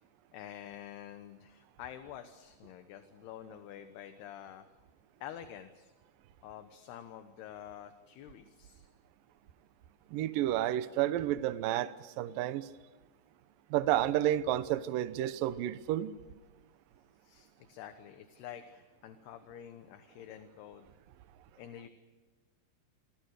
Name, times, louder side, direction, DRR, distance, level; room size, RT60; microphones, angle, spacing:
voice 1, 0.3-4.7 5.2-5.9 6.4-8.9 17.2-20.9 21.6-21.9, left 10 dB, 70° left, 3.0 m, -48 dB
voice 2, 10.1-12.7 13.7-16.1, right 13 dB, 80° right, 2.0 m, -31 dB
29.0 x 24.5 x 6.6 m
omnidirectional pair, 5.2 m